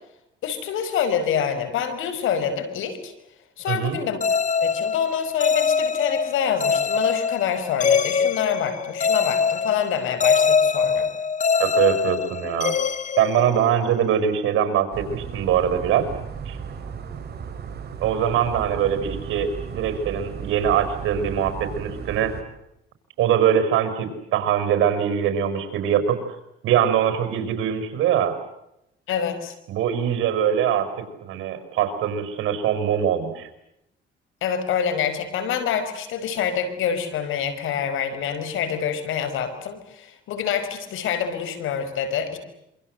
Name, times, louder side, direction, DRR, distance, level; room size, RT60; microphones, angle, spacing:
voice 1, 0.4-3.1 3.6-4.2 4.6-11.1 29.1-29.5 34.4-42.4, left 8 dB, 85° left, 10 dB, 5.4 m, -26 dB
voice 2, 3.7-4.0 11.6-12.7 13.2-16.1 16.5-16.6 18.0-22.3 23.2-26.2 26.6-28.3 29.7-30.9 31.2-33.5, right 9 dB, 85° right, 9 dB, 5.6 m, -22 dB
sound 1, 4.2-14.0, left 6 dB, 40° left, 1.2 m, -23 dB
sound 2, 14.9-22.4, right 6 dB, 55° right, 4.9 m, -35 dB
27.0 x 25.5 x 8.0 m, 0.83 s
cardioid pair, 90°, 20 cm